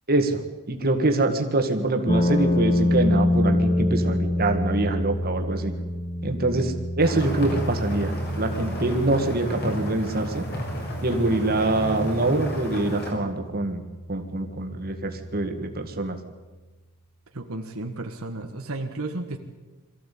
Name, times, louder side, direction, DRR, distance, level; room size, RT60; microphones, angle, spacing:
voice 1, 0.1-0.4 0.7-5.7 6.2-10.4 11.0-13.8 14.1-16.2, right 2 dB, 45° right, 5 dB, 2.0 m, -25 dB
sound 1, 2.1-16.1, left 1 dB, 25° left, 1.6 m, -28 dB
sound 2, 7.0-13.1, equal, 50° left, 6.5 m, -33 dB
voice 2, 17.3-19.4, right 2 dB, 70° right, 4 dB, 1.5 m, -33 dB
23.0 x 15.0 x 8.5 m, 1.2 s
head